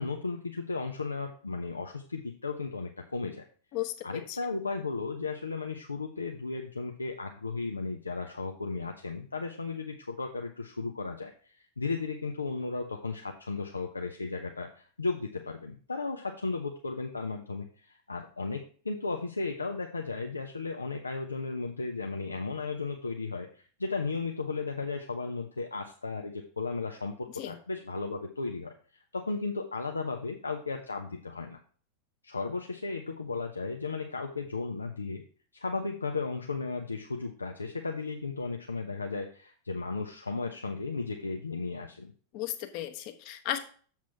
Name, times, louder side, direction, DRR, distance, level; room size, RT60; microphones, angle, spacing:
voice 1, 0.0-3.4 4.0-31.6 32.2-35.2 35.5-42.1, left 4 dB, 80° left, 4 dB, 0.7 m, -35 dB
voice 2, 3.7-4.4 27.3-27.5 42.3-43.6, left 13 dB, 45° left, 7 dB, 1.1 m, -35 dB
7.3 x 6.0 x 4.5 m, 0.44 s
figure-of-eight pair, 90°, 0 cm